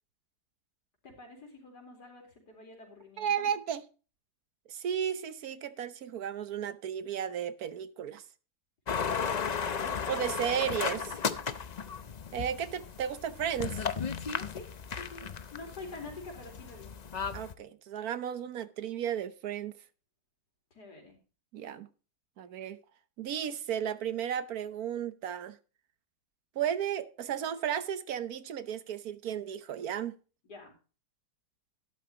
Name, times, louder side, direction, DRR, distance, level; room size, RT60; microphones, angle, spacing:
voice 1, 1.0-3.5 9.2-10.1 10.4-10.7 14.5-15.2 15.5-16.9 20.7-21.2 30.5-30.7, left 3 dB, 85° left, 2 dB, 4.4 m, -47 dB
voice 2, 3.2-3.8 4.7-8.3 10.1-11.2 12.3-13.9 17.3-19.9 21.5-21.9 22.4-22.8 23.2-25.6 26.5-30.2, right 9 dB, 70° right, 13 dB, 1.3 m, -34 dB
sound 1, 8.9-17.5, left 6 dB, 50° left, 0.5 m, -35 dB
12.5 x 12.0 x 2.9 m, 0.35 s
omnidirectional pair, 1.7 m